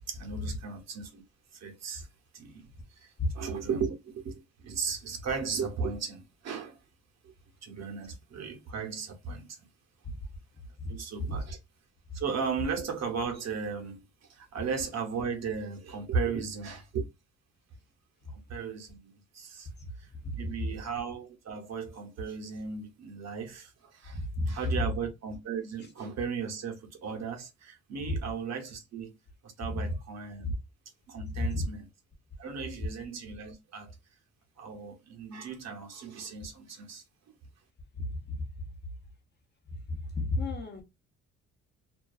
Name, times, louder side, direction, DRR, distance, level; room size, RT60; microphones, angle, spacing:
voice 1, 0.1-1.2 1.5-2.1 2.3-6.8 7.6-9.7 10.9-11.6 12.1-14.0 14.3-17.1 18.3-19.7 20.0-29.1 29.4-30.5 31.1-31.9 32.4-33.9 34.6-37.0, right 5 dB, 60° right, 0.9 m, -36 dB
voice 2, 20.2-20.7 24.1-24.7 28.1-28.2 30.4-30.5 31.4-31.6 38.0-38.4 39.9-40.8, left 2 dB, 35° left, 0.8 m, -32 dB
2.4 x 2.2 x 2.3 m
cardioid pair, 90°, 30 cm